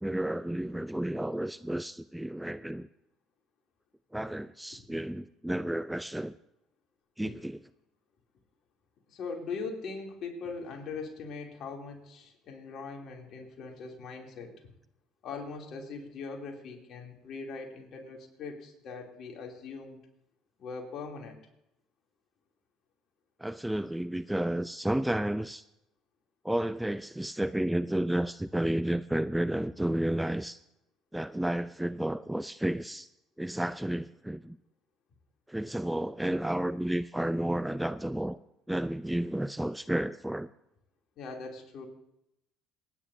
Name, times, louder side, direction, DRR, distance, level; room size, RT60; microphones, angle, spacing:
voice 1, 0.0-2.9 4.1-6.4 7.2-7.6 23.4-25.6 26.4-30.6 31.1-33.1 33.4-34.6 35.5-38.4 38.7-40.5, right 1 dB, 5° right, 0.4 m, -31 dB
voice 2, 9.1-14.6 15.2-20.0 20.6-21.4 41.2-41.9, left 4 dB, 55° left, 3.0 m, -41 dB
27.5 x 9.8 x 2.7 m
hypercardioid pair, 70°, 0 cm